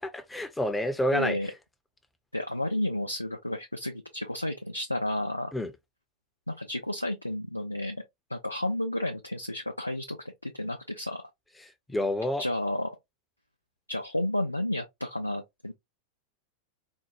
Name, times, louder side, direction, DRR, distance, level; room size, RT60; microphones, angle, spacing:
voice 1, 0.0-1.4 5.5-5.7 11.9-12.4, left 1 dB, 10° left, 0.7 m, -28 dB
voice 2, 1.1-1.5 2.3-5.5 6.5-8.0 8.3-10.2 10.4-11.2 12.4-12.9 13.9-15.7, left 1 dB, 85° left, 0.5 m, -31 dB
4.4 x 2.2 x 2.9 m
figure-of-eight pair, 90°, 0 cm